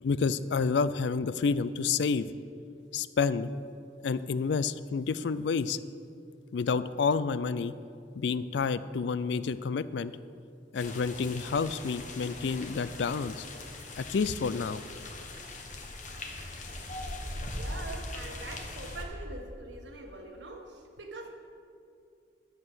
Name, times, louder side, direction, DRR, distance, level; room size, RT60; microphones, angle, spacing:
voice 1, 0.0-2.3 2.9-3.5 4.0-5.8 6.5-7.7 8.2-10.1 10.7-13.5 14.0-14.8, left 5 dB, 70° left, 15 dB, 0.4 m, -29 dB
sound 1, 10.7-19.0, left 2 dB, 45° left, 1.2 m, -41 dB
voice 2, 17.5-21.3, right 2 dB, 75° right, 3 dB, 1.4 m, -43 dB
10.5 x 7.6 x 6.2 m, 2.5 s
head